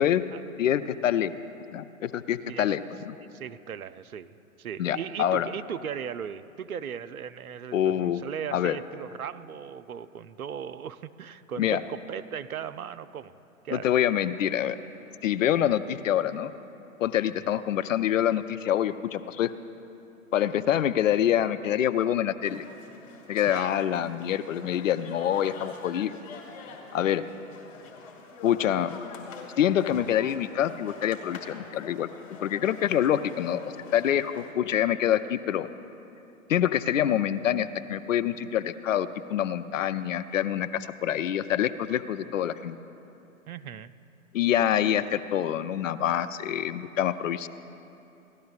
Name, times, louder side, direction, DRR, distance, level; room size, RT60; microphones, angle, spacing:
voice 1, 0.0-0.4 2.5-2.8 3.3-13.3 13.6-13.9 17.4-17.6 23.5-23.7 43.5-43.9, right 8 dB, 85° right, 13 dB, 0.5 m, -38 dB
voice 2, 0.6-1.3 1.7-2.8 3.1-3.2 4.8-5.5 7.7-8.2 8.5-8.8 11.6-11.8 13.7-14.8 15.2-16.5 17.0-19.5 20.3-22.7 23.3-26.2 26.9-27.3 28.4-28.9 29.6-32.1 32.4-35.7 36.5-42.8 44.3-47.5, left 10 dB, 65° left, 13 dB, 0.5 m, -26 dB
sound 1, 22.4-34.5, left 4 dB, 50° left, 2.4 m, -45 dB
18.0 x 12.5 x 2.4 m, 2.8 s
figure-of-eight pair, 115°, 42 cm